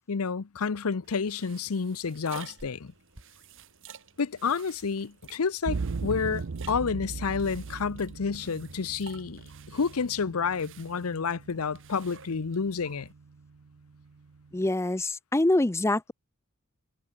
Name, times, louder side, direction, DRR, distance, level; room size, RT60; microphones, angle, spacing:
voice 1, 0.1-2.9 4.2-13.1, left 5 dB, 75° left, 0.7 m, -30 dB
sound 1, 1.0-13.1, right 5 dB, 60° right, 5.6 m, -51 dB
sound 2, 5.6-14.7, right 4 dB, 80° right, 0.6 m, -39 dB
voice 2, 14.5-16.1, left 2 dB, 10° left, 0.5 m, -25 dB
head